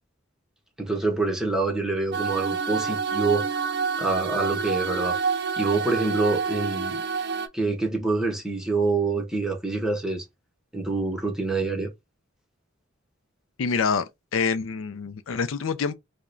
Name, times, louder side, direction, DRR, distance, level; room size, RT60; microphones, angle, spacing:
voice 1, 0.8-3.5 4.0-5.2 5.6-7.0 7.5-10.2 10.7-11.9, right 3 dB, 5° right, 0.9 m, -26 dB
sound 1, 2.1-7.5, right 5 dB, 55° right, 0.5 m, -27 dB
voice 2, 13.6-14.1 14.3-15.9, left 5 dB, 85° left, 0.5 m, -26 dB
4.7 x 2.2 x 2.6 m
head